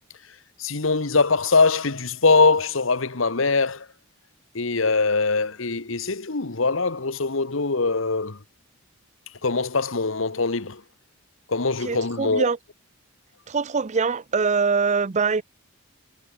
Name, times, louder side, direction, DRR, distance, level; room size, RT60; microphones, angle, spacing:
voice 1, 0.6-3.9 4.5-8.4 9.4-10.8 11.5-12.5, left 4 dB, 70° left, 1.4 m, -22 dB
voice 2, 11.8-12.6 13.5-15.4, right 5 dB, 35° right, 0.5 m, -23 dB
head